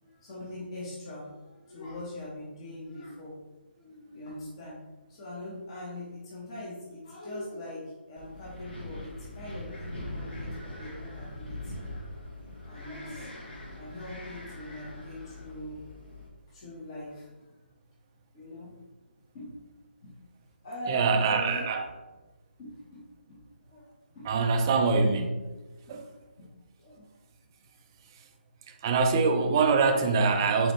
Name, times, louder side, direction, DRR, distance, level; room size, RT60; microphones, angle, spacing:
voice 1, 0.0-3.3 3.8-4.8 5.1-11.8 12.6-15.8 16.5-17.5 18.3-18.7 19.3-19.6 20.0-20.1 20.6-21.6 22.6-23.0 23.3-23.4 23.7-24.3 24.7-24.8 25.9-26.1 26.4-26.5 26.8-27.1 30.5-30.6, left 1 dB, 30° left, -6 dB, 1.0 m, -42 dB
Wind, 8.2-16.3, left 1 dB, 65° left, 1.4 m, -42 dB
voice 2, 20.9-21.8 24.3-25.3 25.9-26.0 28.8-30.7, right 4 dB, 20° right, 5 dB, 0.3 m, -24 dB
4.1 x 3.9 x 3.0 m, 1.2 s
hypercardioid pair, 160°, 6 cm